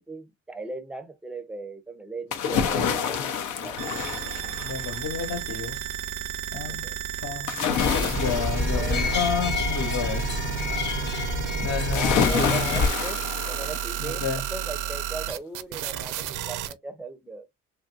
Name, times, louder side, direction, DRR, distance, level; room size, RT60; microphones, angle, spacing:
voice 1, 0.0-3.8 4.4-4.6 6.7-7.0 8.7-9.2 11.9-14.2 14.5-17.5, right 3 dB, 5° right, 0.5 m, -38 dB
sound 1, 2.3-5.1 7.5-10.1 11.9-14.2 14.6-14.7, left 7 dB, 85° left, 0.7 m, -28 dB
sound 2, 3.8-16.7, right 10 dB, 85° right, 0.5 m, -32 dB
voice 2, 4.5-5.8 6.5-6.9 7.2-7.5 8.2-10.2 11.6-12.8 14.0-14.4, left 6 dB, 60° left, 1.0 m, -30 dB
sound 3, 7.8-12.9, left 4 dB, 35° left, 0.7 m, -28 dB
3.0 x 2.5 x 2.4 m
cardioid pair, 90°, 30 cm